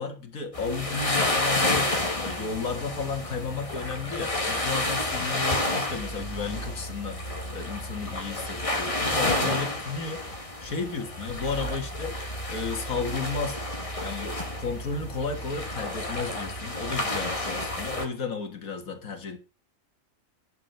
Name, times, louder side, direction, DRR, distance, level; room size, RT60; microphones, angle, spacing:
voice 1, 0.0-7.2 7.5-10.2 10.6-12.2 12.5-13.6 14.0-19.4, left 5 dB, 90° left, 2.2 m, -33 dB
sound 1, 0.5-18.1, left 1 dB, 25° left, 2.0 m, -30 dB
11.0 x 6.9 x 5.6 m
omnidirectional pair, 1.4 m